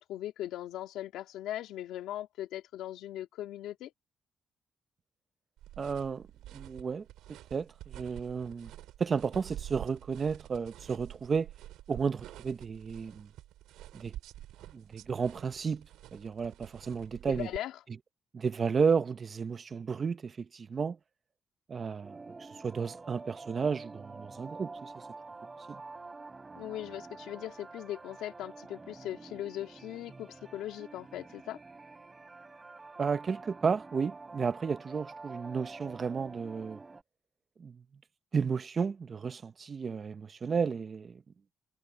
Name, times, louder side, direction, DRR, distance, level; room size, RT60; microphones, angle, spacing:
voice 1, 0.0-3.9 17.3-17.7 26.6-31.6, left 13 dB, 90° left, 2.3 m, -39 dB
sound 1, 5.6-17.6, right 14 dB, 90° right, 6.2 m, -48 dB
voice 2, 5.8-6.3 6.5-7.0 7.5-8.7 9.0-11.5 11.9-13.3 13.9-14.1 14.7-17.5 18.3-21.0 21.7-24.9 25.7-25.8 33.0-36.8 37.6-37.8 38.3-41.2, right 5 dB, 40° right, 1.0 m, -32 dB
sound 2, 22.0-37.0, right 3 dB, 25° right, 3.7 m, -48 dB
cardioid pair, 90°, 0 cm